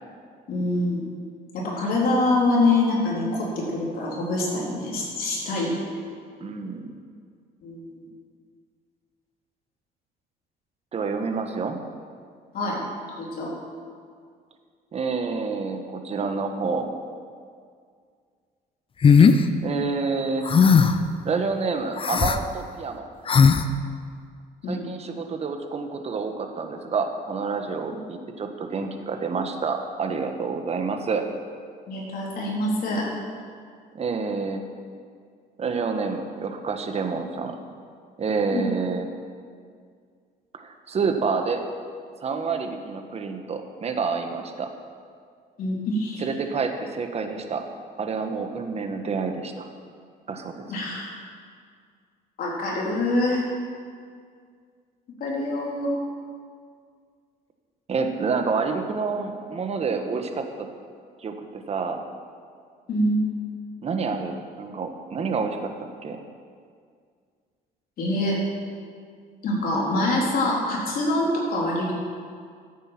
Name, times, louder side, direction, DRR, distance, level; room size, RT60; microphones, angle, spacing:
voice 1, 0.5-1.1 1.5-5.8 7.6-8.0 12.5-12.8 13.2-13.5 24.6-24.8 31.9-33.1 38.5-38.7 45.6-46.2 50.7-51.2 52.4-53.4 55.2-55.9 62.9-63.2 68.0-68.4 69.4-71.9, left 2 dB, 60° left, -4 dB, 3.9 m, -25 dB
voice 2, 6.4-6.9 10.9-11.8 14.9-16.9 19.6-20.4 21.2-23.1 24.7-31.2 33.9-34.6 35.6-37.6 38.2-39.1 40.5-41.6 42.2-44.7 46.2-47.6 48.0-49.7 50.3-50.7 57.9-60.7 61.2-62.0 63.8-66.2, right 4 dB, 40° right, 5 dB, 1.4 m, -28 dB
sound 1, 19.0-19.4 20.5-21.0 22.0-22.4 23.3-23.6, left 6 dB, 30° left, 0.7 m, -16 dB
13.5 x 8.4 x 6.0 m, 2.1 s
cardioid pair, 110°, 17 cm